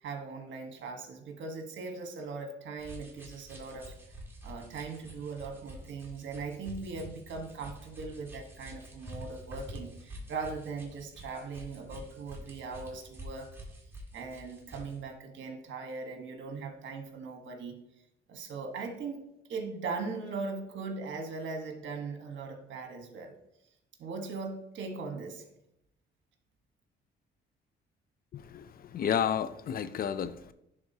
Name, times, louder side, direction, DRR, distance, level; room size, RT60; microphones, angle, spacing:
voice 1, 0.0-3.9 4.4-13.5 14.1-17.8 18.3-23.4 24.0-25.4, right 4 dB, 70° right, 4 dB, 1.3 m, -39 dB
sound 1, 2.8-15.0, equal, 10° right, 1.8 m, -47 dB
voice 2, 28.3-30.5, left 8 dB, 50° left, 14 dB, 0.4 m, -32 dB
10.5 x 3.8 x 2.8 m, 0.81 s
cardioid pair, 90°, 20 cm